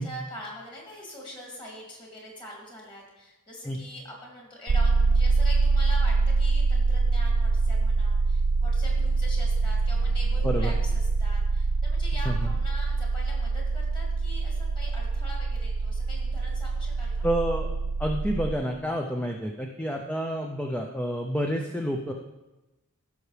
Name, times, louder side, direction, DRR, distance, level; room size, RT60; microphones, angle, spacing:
voice 1, 0.0-17.3, left 1 dB, 25° left, -2 dB, 2.6 m, -43 dB
sound 1, 4.7-18.5, right 3 dB, 55° right, 0.3 m, -24 dB
voice 2, 17.2-17.7 18.0-22.1, equal, 5° left, 2 dB, 0.5 m, -29 dB
15.5 x 6.6 x 3.3 m, 1.0 s
head